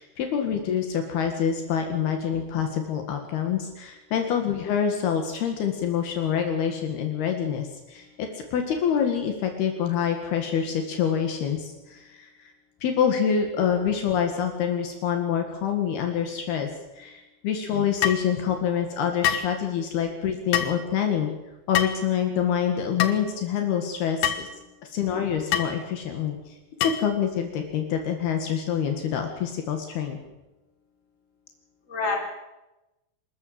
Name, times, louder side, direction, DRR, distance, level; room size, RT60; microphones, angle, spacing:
voice 1, 0.0-12.3 12.8-16.7 17.0-21.3 21.7-24.5 24.9-26.4 26.8-30.2, left 8 dB, 70° left, 5 dB, 3.8 m, -26 dB
sound 1, 18.0-18.3 19.2-19.5 20.5-20.8 21.7-22.0 23.0-23.2 24.2-24.5 25.5-25.7 26.8-27.1, left 10 dB, 90° left, 3.6 m, -25 dB
voice 2, 24.1-24.8 31.9-32.2, left 4 dB, 20° left, 1 dB, 4.3 m, -35 dB
27.0 x 13.5 x 7.7 m, 1.0 s
omnidirectional pair, 4.9 m